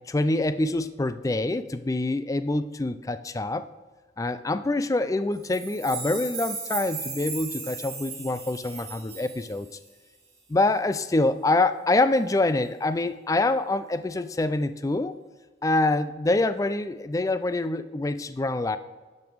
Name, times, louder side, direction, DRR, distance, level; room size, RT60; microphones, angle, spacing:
voice 1, 0.1-3.7 4.2-9.7 10.5-15.1 15.6-18.8, left 2 dB, 20° left, 12 dB, 0.3 m, -25 dB
sound 1, 5.4-9.9, right 5 dB, 35° right, 1.8 m, -36 dB
11.0 x 5.3 x 4.6 m, 1.3 s
head